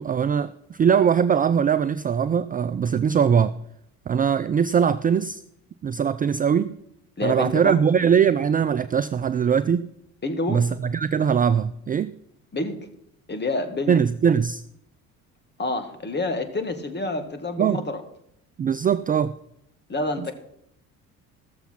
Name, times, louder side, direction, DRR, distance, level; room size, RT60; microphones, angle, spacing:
voice 1, 0.0-3.6 4.1-5.4 5.8-6.8 7.2-9.9 10.5-12.1 13.9-14.6 17.6-17.9 18.6-19.3 20.2-20.3, right 7 dB, 20° right, 0.4 m, -21 dB
voice 2, 7.2-7.8 10.2-10.7 12.5-12.8 13.3-14.0 15.6-18.0 19.9-20.3, left 2 dB, 25° left, 1.9 m, -28 dB
15.0 x 7.0 x 5.8 m
hypercardioid pair, 60°, 41 cm